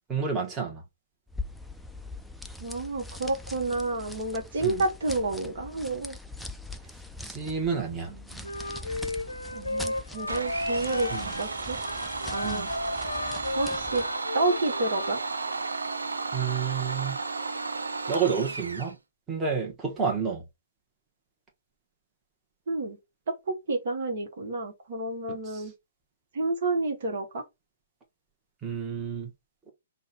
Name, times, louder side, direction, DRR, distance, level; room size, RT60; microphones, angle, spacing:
voice 1, 0.1-0.8 4.6-4.8 7.2-8.1 11.1-11.3 12.4-12.7 16.3-17.2 18.1-19.0 19.3-20.4 25.4-25.7 28.6-29.3, right 6 dB, 15° right, 1.1 m, -30 dB
sound 1, 1.3-14.2, left 2 dB, ahead, 0.4 m, -42 dB
voice 2, 2.6-6.2 8.1-8.5 9.5-11.8 12.3-12.7 13.5-14.0 14.3-15.2 22.7-23.0 23.3-25.7 26.3-27.4, right 2 dB, 50° right, 1.1 m, -30 dB
Wind instrument woodwind instrument, 8.4-11.5 11.8-15.2, left 2 dB, 80° left, 0.6 m, -34 dB
Domestic sounds home sounds, 10.3-18.9, right 3 dB, 75° right, 0.6 m, -33 dB
5.3 x 2.3 x 3.9 m
figure-of-eight pair, 120°, 0 cm